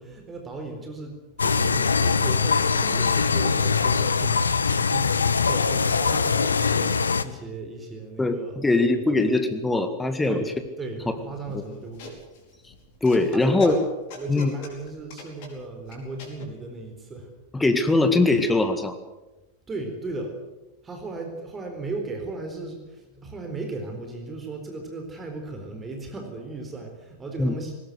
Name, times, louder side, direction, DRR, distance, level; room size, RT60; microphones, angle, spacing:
voice 1, 0.0-6.9 7.2-8.6 8.9-9.2 10.2-12.2 13.2-13.8 14.1-17.3 19.7-20.4 20.8-27.7, right 3 dB, 20° right, 3 dB, 4.1 m, -36 dB
sound 1, 1.4-7.2, left 5 dB, 75° left, 1.0 m, -22 dB
voice 2, 8.2-10.4 11.5-11.6 13.0-13.8 14.3-14.5 17.5-19.0 27.4-27.5, left 2 dB, 10° left, 8 dB, 2.0 m, -21 dB
sound 2, 11.3-16.5, left 4 dB, 50° left, 5.0 m, -42 dB
20.5 x 18.5 x 8.0 m, 1.0 s
figure-of-eight pair, 90°, 0 cm